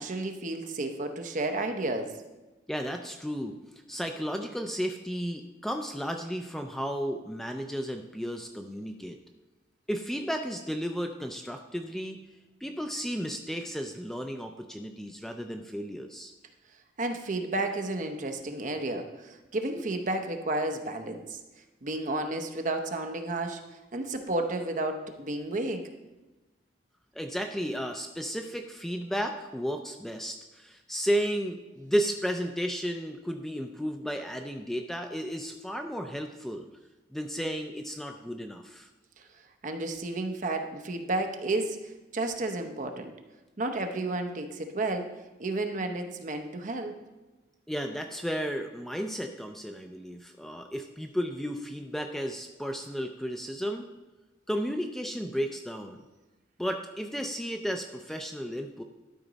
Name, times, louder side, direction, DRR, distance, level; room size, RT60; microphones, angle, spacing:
voice 1, 0.0-2.1 17.0-21.4 21.8-23.6 23.9-25.9 39.2-39.3 39.6-43.1 43.6-45.1 45.4-47.0, right 2 dB, 45° right, 5 dB, 0.8 m, -32 dB
voice 2, 2.7-3.6 3.9-9.2 9.9-12.2 12.6-16.3 27.1-36.7 37.1-38.9 47.7-53.9 54.5-56.0 56.6-58.8, equal, ahead, 4 dB, 0.4 m, -33 dB
12.0 x 5.0 x 4.0 m, 1.1 s
head